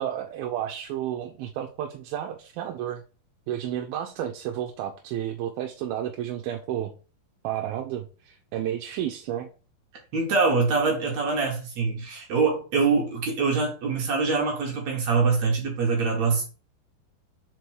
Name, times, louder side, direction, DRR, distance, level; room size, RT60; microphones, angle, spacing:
voice 1, 0.0-3.0 3.5-6.9 7.4-9.5, right 11 dB, 80° right, 4 dB, 2.3 m, -31 dB
voice 2, 10.1-16.4, right 4 dB, 60° right, 0 dB, 2.0 m, -24 dB
5.1 x 4.6 x 4.6 m, 0.36 s
omnidirectional pair, 4.6 m